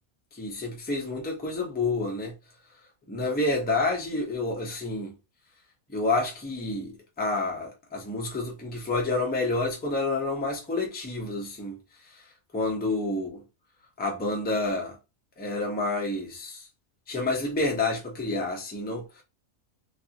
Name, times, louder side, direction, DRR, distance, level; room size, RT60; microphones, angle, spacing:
voice 1, 0.3-2.3 3.1-5.1 5.9-11.8 12.5-13.4 14.0-15.0 15.4-16.7 17.1-19.2, left 2 dB, 10° left, 0.5 m, -29 dB
2.6 x 2.4 x 2.8 m
omnidirectional pair, 1.4 m